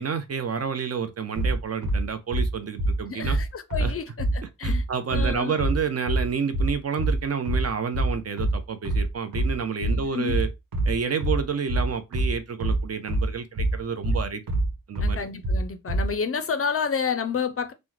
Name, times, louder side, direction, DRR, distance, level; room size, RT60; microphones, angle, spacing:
voice 1, 0.0-3.4 3.8-3.9 4.6-10.5 10.9-14.4 14.9-15.2, right 6 dB, 45° right, 0.5 m, -29 dB
sound 1, 1.4-16.1, right 1 dB, 90° right, 1.0 m, -25 dB
voice 2, 3.1-5.5 9.8-10.4 15.0-17.7, left 6 dB, 40° left, 0.4 m, -30 dB
3.0 x 2.1 x 3.7 m
wide cardioid pair, 140°, 34 cm